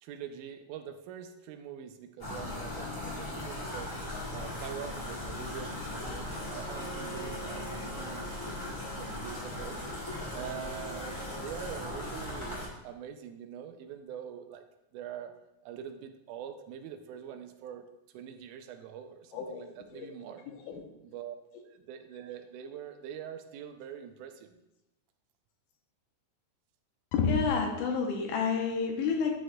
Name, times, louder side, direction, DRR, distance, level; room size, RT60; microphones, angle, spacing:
voice 1, 0.0-3.9 4.3-8.6 8.9-9.8 10.3-14.6 14.9-15.3 15.7-17.8 18.1-20.5 21.0-21.4 21.7-24.5, right 9 dB, 85° right, 7 dB, 2.1 m, -44 dB
sound 1, 2.2-12.7, left 1 dB, 10° left, 1.5 m, -38 dB
Bowed string instrument, 6.3-11.8, right 4 dB, 65° right, 2.8 m, -48 dB
voice 2, 19.3-19.6 19.9-20.1 20.5-20.8 27.1-29.4, left 5 dB, 90° left, 2 dB, 2.4 m, -29 dB
9.5 x 6.2 x 2.2 m, 0.92 s
omnidirectional pair, 3.5 m